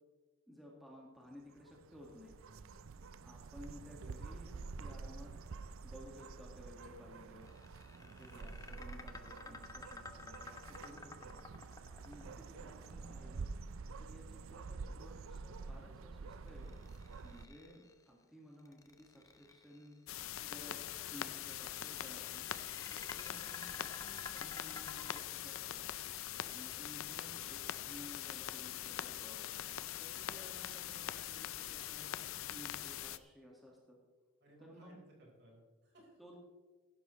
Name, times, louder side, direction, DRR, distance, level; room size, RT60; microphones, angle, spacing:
voice 1, 0.5-2.3 3.2-5.3 5.8-7.6 8.0-11.3 11.9-13.5 14.0-16.7 17.2-19.9 20.4-20.8 21.1-22.5 22.9-25.8 26.4-29.4 30.0-32.1 32.5-34.0 34.7-34.9 36.2-36.3, equal, ahead, -3 dB, 1.8 m, -56 dB
sound 1, 1.3-17.5, right 4 dB, 75° right, 0.5 m, -48 dB
voice 2, 2.4-3.2 8.0-8.6 34.4-36.4, right 1 dB, 50° right, -2 dB, 4.4 m, -62 dB
sound 2, 7.4-13.7 16.5-18.0 18.6-19.9 21.2-25.2, left 3 dB, 15° left, 0.7 m, -52 dB
sound 3, 20.1-33.2, left 11 dB, 75° left, 0.5 m, -43 dB
16.0 x 11.5 x 3.2 m, 1.4 s
head